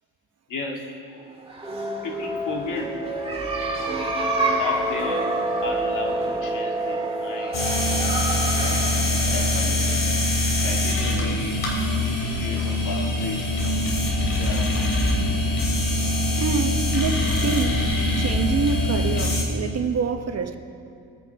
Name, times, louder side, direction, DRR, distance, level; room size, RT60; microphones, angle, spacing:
voice 1, 0.5-1.0 2.0-3.0 4.6-5.3 5.6-7.6 8.6-8.8 9.1-10.0 10.6-11.6 12.0-13.5 14.4-14.9, left 3 dB, 55° left, 2.4 m, -34 dB
sound 1, 1.4-10.9, right 2 dB, 15° right, 2.0 m, -28 dB
sound 2, 7.5-19.4, left 1 dB, 90° left, 2.9 m, -23 dB
voice 2, 16.4-17.9 18.2-20.6, right 5 dB, 40° right, 1.0 m, -26 dB
22.0 x 9.7 x 3.5 m
cardioid pair, 100°, 38 cm